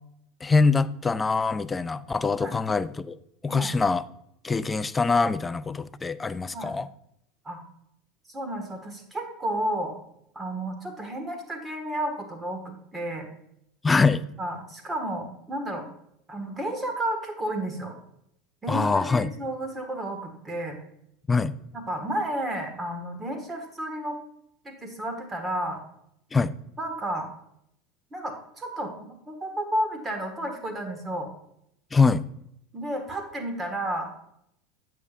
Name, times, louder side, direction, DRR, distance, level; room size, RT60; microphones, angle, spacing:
voice 1, 0.4-3.2 3.4-4.0 4.4-6.9 13.8-14.2 18.7-19.3 21.3-21.5 26.3-26.5 31.9-32.3, left 4 dB, 15° left, 15 dB, 0.3 m, -23 dB
voice 2, 8.3-9.9 10.3-13.3 14.4-15.9 16.3-17.9 18.6-20.8 21.7-24.2 24.6-25.8 26.8-27.3 28.1-31.3 32.7-34.3, right 1 dB, 20° right, 5 dB, 1.6 m, -32 dB
8.2 x 6.7 x 2.5 m, 0.74 s
hypercardioid pair, 95°, 0 cm